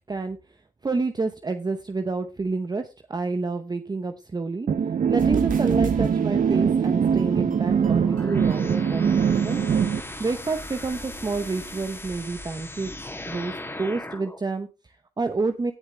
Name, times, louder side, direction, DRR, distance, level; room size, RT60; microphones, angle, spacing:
voice 1, 0.8-4.7 5.1-9.6 9.9-12.9 13.3-15.7, right 3 dB, 30° right, 8 dB, 0.9 m, -29 dB
sound 1, 4.7-10.0, right 7 dB, 70° right, 0.6 m, -22 dB
sound 2, 5.2-11.8, right 4 dB, 85° right, 2.1 m, -38 dB
sound 3, 8.0-14.4, left 1 dB, 15° left, 2.6 m, -38 dB
16.5 x 7.2 x 3.4 m, 0.29 s
cardioid pair, 85°, 13 cm